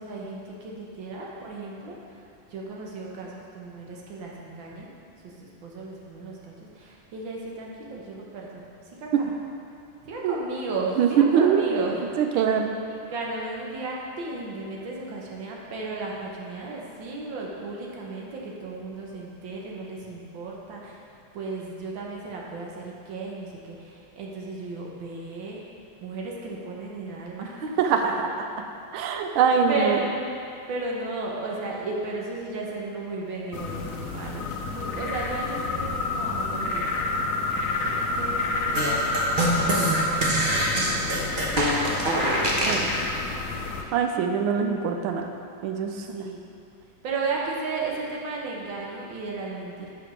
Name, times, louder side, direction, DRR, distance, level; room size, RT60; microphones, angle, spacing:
voice 1, 0.0-1.9 2.5-4.9 5.2-9.3 10.0-12.0 12.4-12.6 13.1-21.0 21.3-25.6 26.0-27.7 29.1-30.3 30.7-37.0 37.5-39.3 39.6-40.2 40.7-43.4 46.0-46.4 47.0-49.9, right 3 dB, 70° right, -3 dB, 1.6 m, -35 dB
voice 2, 11.0-11.8 12.2-12.7 27.8-28.1 28.9-30.0 42.7-42.9 43.9-45.3 45.6-46.1, right 7 dB, 90° right, 4 dB, 1.5 m, -23 dB
sound 1, 33.5-43.8, left 3 dB, 80° left, 0.7 m, -29 dB
sound 2, 38.7-42.9, right 1 dB, 50° right, 0.6 m, -24 dB
6.2 x 5.0 x 6.0 m, 2.5 s
omnidirectional pair, 2.2 m